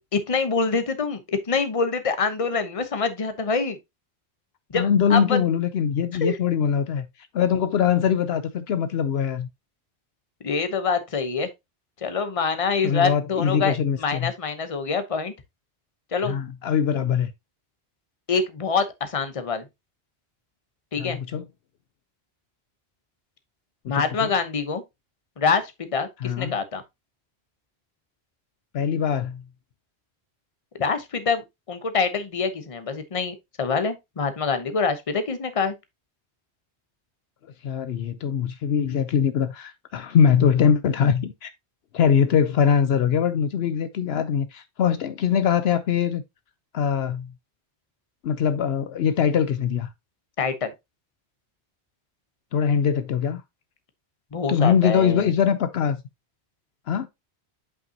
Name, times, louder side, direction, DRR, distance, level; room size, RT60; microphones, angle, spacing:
voice 1, 0.1-3.8 4.7-5.4 6.2-6.4 10.4-11.5 12.0-15.3 16.1-16.4 18.3-19.6 20.9-21.2 23.9-24.8 25.4-26.8 30.7-35.7 50.4-50.7 54.3-55.3, left 5 dB, 35° left, 0.9 m, -25 dB
voice 2, 4.7-7.1 7.3-9.5 12.8-14.3 16.2-17.3 21.0-21.4 23.8-24.3 26.2-26.5 28.7-29.4 37.6-41.5 41.9-46.2 46.7-47.3 48.2-49.9 52.5-53.4 54.5-56.0 56.9-57.1, left 7 dB, 70° left, 0.8 m, -22 dB
8.2 x 5.4 x 2.8 m
omnidirectional pair, 1.1 m